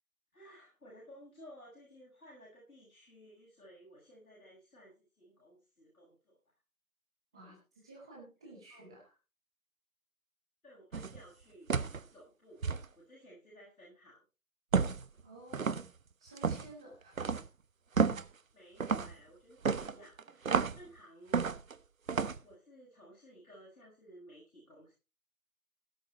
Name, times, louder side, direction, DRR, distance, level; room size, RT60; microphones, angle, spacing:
voice 1, 0.3-6.4 7.3-7.6 8.7-8.9 10.6-11.7 12.1-14.2 18.5-21.4 22.1-24.9, equal, 80° left, -4 dB, 7.8 m, -56 dB
voice 2, 7.3-9.1 15.2-15.9 16.2-17.2, right 2 dB, 5° right, -2 dB, 0.8 m, -53 dB
sound 1, 10.9-11.2 11.7-12.0 12.6-12.8 14.7-15.1 15.5-15.9 16.4-16.7 17.2-17.5 18.0-18.3 18.8-19.1 19.6-20.8 21.3-21.7 22.1-22.4, right 5 dB, 65° right, 1.1 m, -31 dB
17.0 x 8.2 x 4.4 m, 0.31 s
figure-of-eight pair, 155°, 43 cm